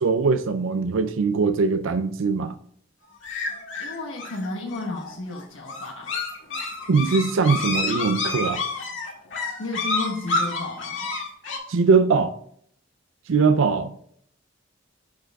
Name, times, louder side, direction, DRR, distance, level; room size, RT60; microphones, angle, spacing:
voice 1, 0.0-2.5 6.9-8.6 11.7-12.3 13.3-13.9, right 4 dB, 80° right, 0.5 m, -21 dB
sound 1, 3.2-11.6, left 3 dB, 70° left, 2.0 m, -29 dB
voice 2, 3.8-6.1 9.6-11.1, left 2 dB, 90° left, 1.4 m, -33 dB
9.5 x 4.6 x 3.5 m
head